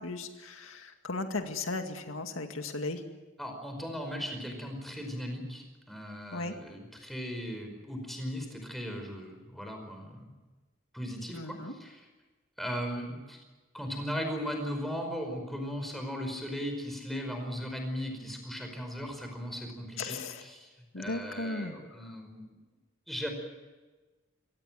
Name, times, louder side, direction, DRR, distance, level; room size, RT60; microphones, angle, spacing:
voice 1, 0.0-3.0 6.3-6.6 11.3-11.7 20.0-20.4 20.9-21.7, left 3 dB, 90° left, 5 dB, 2.1 m, -36 dB
voice 2, 3.4-10.3 10.9-12.1 12.6-13.4 13.7-22.6 23.1-23.3, equal, ahead, 3 dB, 5.1 m, -37 dB
24.5 x 18.0 x 9.2 m, 1.2 s
head